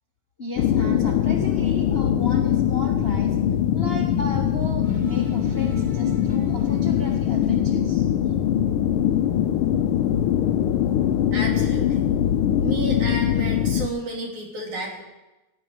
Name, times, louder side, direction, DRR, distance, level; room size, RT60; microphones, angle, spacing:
voice 1, 0.4-3.4 3.7-8.1, left 2 dB, 50° left, 1 dB, 0.6 m, -35 dB
sound 1, 0.6-13.9, left 10 dB, 90° left, 1.2 m, -22 dB
sound 2, 4.8-7.7, left 1 dB, 20° right, 1.6 m, -40 dB
voice 2, 11.3-12.1 12.6-15.0, right 2 dB, 90° right, 0 dB, 4.2 m, -31 dB
16.5 x 6.3 x 9.5 m, 1.0 s
omnidirectional pair, 3.3 m